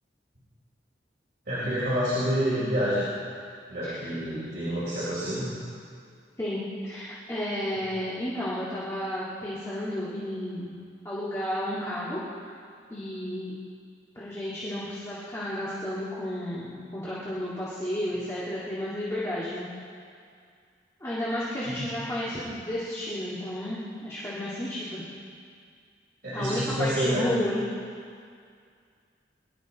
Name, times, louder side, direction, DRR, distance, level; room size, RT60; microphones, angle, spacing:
voice 1, 1.5-3.1 3.7-5.5 21.6-21.9 26.2-27.3, equal, 65° right, -11 dB, 4.1 m, -28 dB
voice 2, 6.4-10.7 11.0-12.2 12.9-13.5 14.2-19.7 21.0-25.0 26.3-27.7, left 1 dB, 15° left, -9 dB, 2.0 m, -32 dB
21.5 x 11.5 x 4.1 m, 2.3 s
head